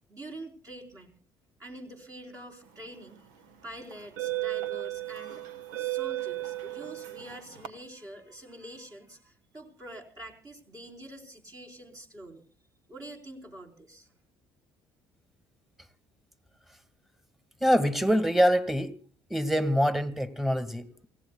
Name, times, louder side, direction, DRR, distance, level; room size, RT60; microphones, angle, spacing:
voice 1, 0.1-1.1 1.6-3.2 3.6-5.4 5.8-12.4 12.9-14.1, right 1 dB, 35° right, 1 dB, 4.2 m, -45 dB
sound 1, 2.9-3.1 3.9-7.7, right 17 dB, 85° right, 1.4 m, -34 dB
voice 2, 17.6-19.0 19.3-21.1, equal, ahead, 12 dB, 1.9 m, -25 dB
28.5 x 16.0 x 2.3 m, 0.38 s
hypercardioid pair, 65°, 10 cm